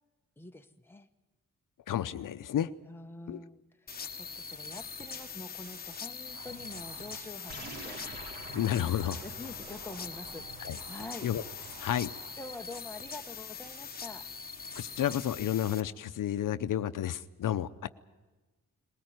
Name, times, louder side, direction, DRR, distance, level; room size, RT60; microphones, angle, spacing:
voice 1, 0.4-1.1 2.9-8.0 8.4-8.9 9.2-11.3 12.4-14.3, left 2 dB, 5° left, 5 dB, 1.0 m, -46 dB
voice 2, 1.9-2.7 3.3-3.4 8.5-9.2 10.6-10.8 11.2-11.4 11.8-12.1 14.7-17.9, left 11 dB, 70° left, 13 dB, 0.7 m, -31 dB
sound 1, 3.9-15.8, left 5 dB, 30° left, 1.2 m, -43 dB
sound 2, 6.2-12.8, right 8 dB, 80° right, 1.0 m, -53 dB
sound 3, 7.5-12.2, right 1 dB, 30° right, 3.8 m, -48 dB
20.5 x 18.5 x 9.3 m, 1.2 s
wide cardioid pair, 145°, 33 cm